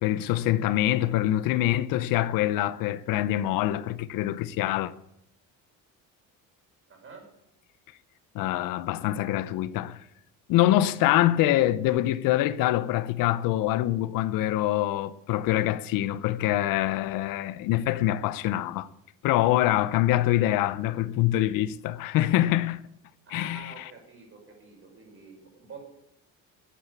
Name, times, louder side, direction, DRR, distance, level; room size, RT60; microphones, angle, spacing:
voice 1, 0.0-4.9 8.3-10.0 10.5-18.9 19.2-22.8 23.3-23.8, left 14 dB, 75° left, 0.8 m, -25 dB
voice 2, 6.9-7.2 23.3-25.8, right 4 dB, 40° right, 6.2 m, -47 dB
11.5 x 9.2 x 8.5 m
cardioid pair, 115°, 34 cm